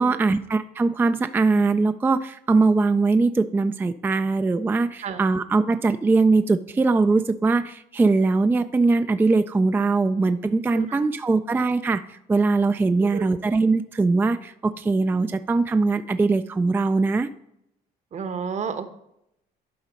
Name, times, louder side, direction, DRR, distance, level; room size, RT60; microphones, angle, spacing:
voice 1, 0.0-17.3, right 3 dB, 10° right, 10 dB, 0.3 m, -21 dB
voice 2, 18.1-18.9, right 6 dB, 45° right, 11 dB, 1.0 m, -31 dB
11.5 x 4.0 x 5.1 m, 0.78 s
cardioid pair, 110°, 17 cm